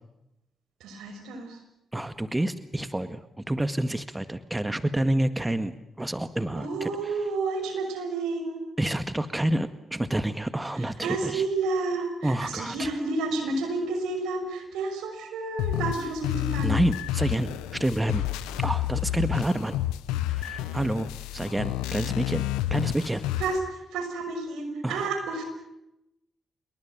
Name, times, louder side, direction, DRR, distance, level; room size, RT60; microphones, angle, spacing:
voice 1, 0.8-1.6 6.5-8.6 10.8-16.8 23.4-25.4, right 3 dB, 80° right, 6 dB, 5.9 m, -30 dB
voice 2, 1.9-7.1 8.8-11.4 12.2-12.9 16.6-18.3 18.6-19.8 20.3-23.3 24.8-25.1, right 1 dB, 15° right, 11 dB, 1.8 m, -28 dB
sound 1, 15.6-23.6, left 14 dB, 85° left, 1.0 m, -30 dB
27.5 x 22.5 x 7.5 m, 0.88 s
hypercardioid pair, 45°, 0 cm